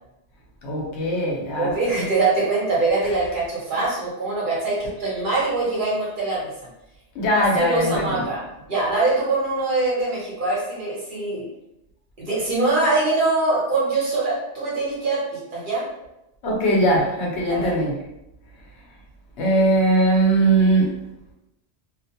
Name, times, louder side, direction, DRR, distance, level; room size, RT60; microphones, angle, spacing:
voice 1, 0.6-1.7 7.2-7.9 16.4-17.9 19.4-20.9, right 1 dB, 75° left, -3 dB, 1.0 m, -20 dB
voice 2, 1.5-6.5 7.3-8.4 8.7-11.4 12.2-15.8 17.5-17.8, right 3 dB, 50° right, -6 dB, 1.0 m, -23 dB
2.4 x 2.1 x 2.7 m, 0.88 s
omnidirectional pair, 1.2 m